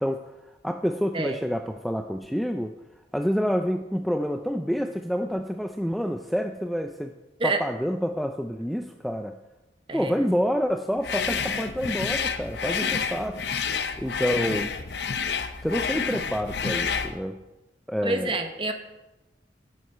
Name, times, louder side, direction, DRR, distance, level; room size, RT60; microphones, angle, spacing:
voice 1, 0.0-2.8 3.1-7.1 7.4-9.4 9.9-13.4 14.0-14.7 15.6-17.4 17.9-18.4, equal, ahead, 5 dB, 0.3 m, -28 dB
sound 1, 11.0-17.2, left 6 dB, 80° left, 0.8 m, -29 dB
voice 2, 18.0-18.7, right 3 dB, 30° right, 7 dB, 0.9 m, -27 dB
10.0 x 7.9 x 5.5 m, 1.0 s
head